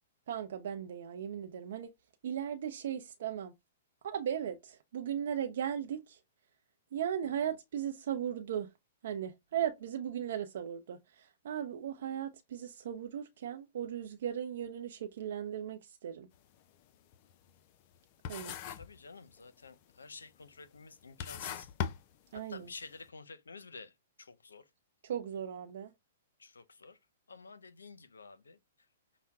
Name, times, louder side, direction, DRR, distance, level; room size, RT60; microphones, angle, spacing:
voice 1, 0.3-1.9 2.2-3.5 4.0-6.2 6.9-8.7 9.0-16.3 18.3-18.5 22.3-22.7 25.0-25.9, right 9 dB, 65° right, 0.6 m, -37 dB
chalk on wooden slate, 16.3-16.6 16.9-18.0 18.2-19.0 19.3-19.8 20.5-20.6 21.0-22.7, left 8 dB, 45° left, 0.5 m, -39 dB
voice 2, 18.5-21.7 22.5-23.9 24.2-24.6 26.4-27.0 27.3-28.6, left 4 dB, 85° left, 0.6 m, -51 dB
5.8 x 2.1 x 3.5 m
hypercardioid pair, 120°, 0 cm